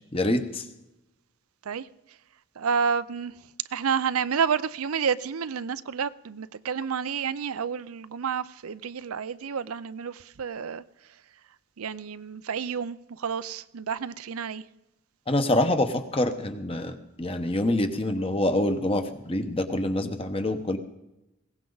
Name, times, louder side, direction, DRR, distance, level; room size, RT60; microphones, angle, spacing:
voice 1, 0.1-0.6 15.3-20.8, left 1 dB, 25° left, 1.1 m, -26 dB
voice 2, 2.6-3.3 3.7-10.8 11.8-14.6, right 6 dB, 85° right, 0.5 m, -30 dB
21.0 x 17.5 x 4.0 m
head